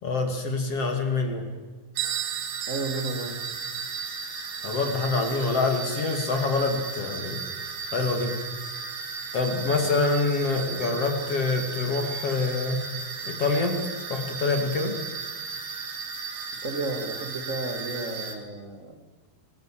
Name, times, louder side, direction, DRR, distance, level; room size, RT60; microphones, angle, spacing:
voice 1, 0.0-1.5 4.6-7.4 7.9-8.4 9.3-12.8 13.2-13.8 14.1-15.0, left 3 dB, 40° left, 4 dB, 2.8 m, -26 dB
sound 1, 2.0-18.4, right 5 dB, 55° right, 4.0 m, -36 dB
Bell, 2.0-7.5, right 13 dB, 80° right, 1.8 m, -37 dB
voice 2, 2.7-3.4 16.6-18.9, right 2 dB, 35° right, 2 dB, 1.2 m, -32 dB
26.0 x 20.0 x 7.6 m, 1.4 s
omnidirectional pair, 4.9 m